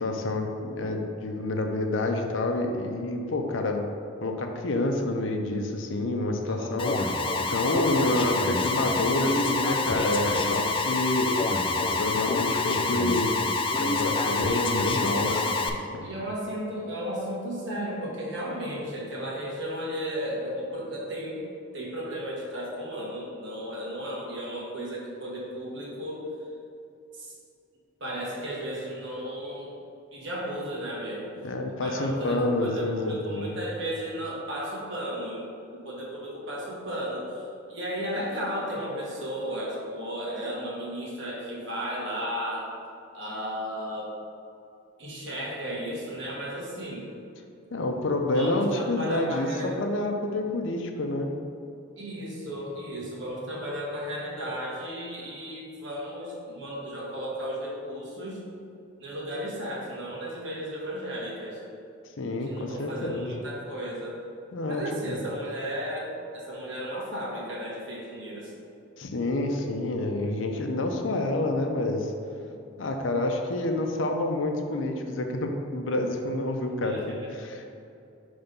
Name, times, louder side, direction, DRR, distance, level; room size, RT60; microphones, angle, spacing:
voice 1, 0.0-3.9 4.2-7.0 7.5-11.3 11.8-13.3 13.8-15.3 15.9-16.1 31.4-33.5 47.7-51.3 62.2-63.3 64.5-65.2 69.0-72.1 72.8-77.7, left 2 dB, 70° left, 3 dB, 0.6 m, -28 dB
voice 2, 6.5-6.9 11.0-11.5 15.2-15.5 16.0-21.4 21.7-26.2 27.1-27.3 28.0-29.7 30.1-31.3 31.8-42.7 43.1-44.1 45.0-47.1 48.3-49.8 52.0-58.4 59.0-61.6 62.4-64.2 64.6-68.5 76.8-77.3, equal, 60° right, -4 dB, 1.4 m, -34 dB
Alarm, 6.8-15.7, left 3 dB, 25° left, 0.3 m, -27 dB
5.5 x 3.4 x 5.2 m, 2.6 s
head